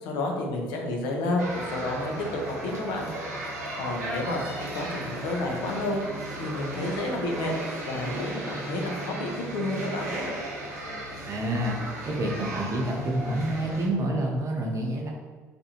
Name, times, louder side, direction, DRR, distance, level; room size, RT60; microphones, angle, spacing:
voice 1, 0.0-3.1 3.7-6.0 6.4-7.5 7.8-10.1, left 2 dB, 65° left, 1 dB, 0.6 m, -30 dB
sound 1, 1.4-13.9, right 1 dB, 90° right, 0.5 m, -35 dB
voice 2, 11.3-15.1, right 1 dB, 40° right, 0 dB, 0.7 m, -28 dB
2.6 x 2.3 x 2.8 m, 1.4 s
hypercardioid pair, 55°, 8 cm